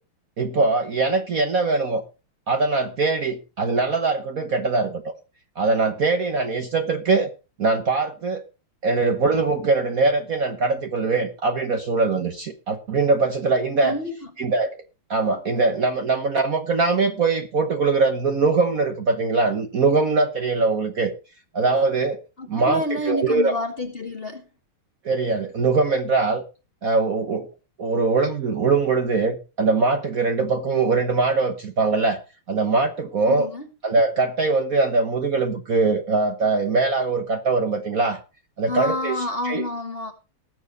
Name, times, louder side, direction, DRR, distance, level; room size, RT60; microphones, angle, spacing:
voice 1, 0.4-2.0 2.5-5.0 5.6-7.3 7.6-8.4 8.8-13.9 14.4-14.8 15.1-21.1 21.5-22.2 22.5-23.5 25.0-26.4 26.8-27.5 27.8-32.2 32.5-33.5 33.8-38.2 38.6-39.2 39.4-39.6, right 3 dB, 45° right, 1.3 m, -22 dB
voice 2, 13.8-14.1 22.4-24.4 33.3-33.7 38.7-40.1, left 2 dB, 30° left, 1.5 m, -28 dB
19.0 x 7.2 x 4.0 m
omnidirectional pair, 2.4 m